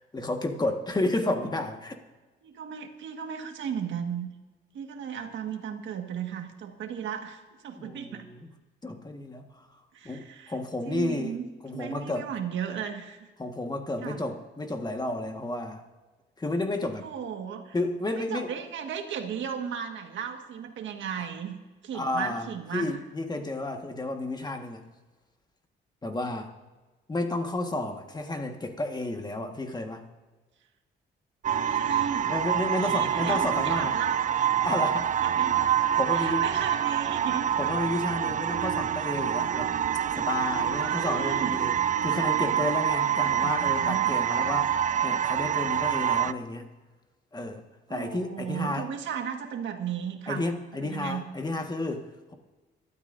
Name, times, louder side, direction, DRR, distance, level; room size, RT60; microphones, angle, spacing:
voice 1, 0.0-1.9 7.8-8.5 8.8-9.7 10.0-11.4 11.6-12.3 13.4-15.8 16.4-17.1 17.7-18.5 21.9-24.8 26.0-26.5 27.1-30.0 32.3-33.9 34.6-35.2 36.0-36.5 37.6-39.7 40.1-41.7 42.0-44.8 45.0-46.7 47.3-47.6 47.9-48.9 50.3-52.3, left 2 dB, 20° left, 4 dB, 1.6 m, -31 dB
voice 2, 2.4-4.3 4.7-8.3 9.9-10.5 10.8-11.5 11.7-13.3 14.0-14.2 17.0-17.8 18.2-21.6 21.8-22.9 31.5-32.3 32.8-34.6 35.2-35.5 36.1-37.5 40.7-41.6 43.2-44.2 47.9-50.5 50.8-51.3, right 8 dB, 70° right, 4 dB, 1.7 m, -35 dB
sound 1, 31.4-46.3, right 9 dB, 40° right, 0.4 m, -26 dB
22.5 x 12.5 x 2.7 m, 1.2 s
cardioid pair, 90°, 20 cm